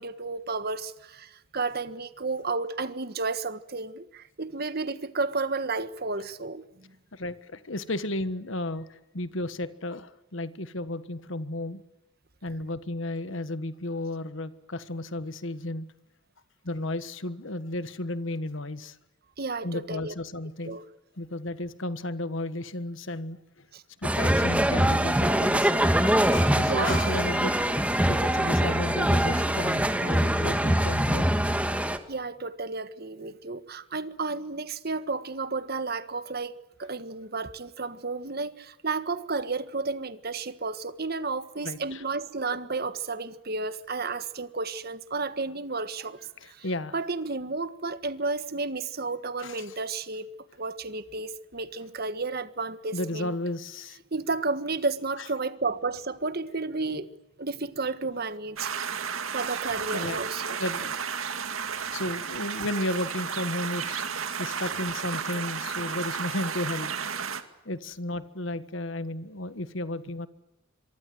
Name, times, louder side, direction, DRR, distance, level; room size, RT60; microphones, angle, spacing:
voice 1, 0.0-6.9 19.4-20.1 20.6-20.8 23.7-23.8 26.7-27.1 32.1-36.5 36.8-46.6 46.9-50.2 50.6-53.3 54.1-57.1 57.4-58.7 59.3-60.6, right 3 dB, 50° right, 1.5 m, -32 dB
voice 2, 7.1-11.8 12.4-15.9 16.6-19.0 19.6-20.8 21.2-23.7 24.0-27.8 28.1-31.4 41.6-42.0 46.4-46.9 49.4-49.8 52.9-54.0 59.7-60.2 60.6-61.0 61.8-66.9 67.6-70.3, left 1 dB, 65° left, 1.5 m, -33 dB
sound 1, 24.0-32.0, right 1 dB, 5° right, 1.6 m, -23 dB
sound 2, 58.6-67.4, right 6 dB, 80° right, 2.2 m, -33 dB
26.0 x 24.0 x 7.9 m
head